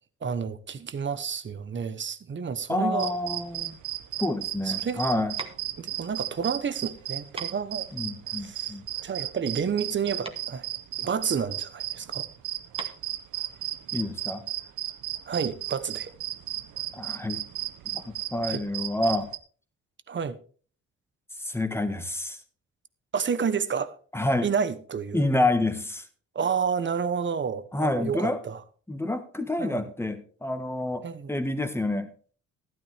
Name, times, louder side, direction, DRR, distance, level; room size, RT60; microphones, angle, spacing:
voice 1, 0.2-3.1 4.6-5.0 5.8-7.9 8.4-8.7 9.0-10.7 11.0-12.3 15.3-16.1 18.5-18.6 20.1-20.4 23.1-23.9 24.4-25.3 26.3-28.6 29.6-29.9 31.0-31.3, right 6 dB, 40° right, 1.0 m, -30 dB
voice 2, 2.7-3.8 4.2-5.3 7.9-8.8 13.9-14.4 16.9-17.4 17.9-19.3 21.4-22.4 24.1-24.5 25.1-26.1 27.7-28.4 28.9-32.1, left 2 dB, 10° left, 1.6 m, -28 dB
sound 1, 3.0-19.4, right 14 dB, 80° right, 0.9 m, -34 dB
sound 2, 4.8-14.3, right 2 dB, 20° right, 1.9 m, -45 dB
13.0 x 12.0 x 3.4 m
cardioid pair, 90°, 30 cm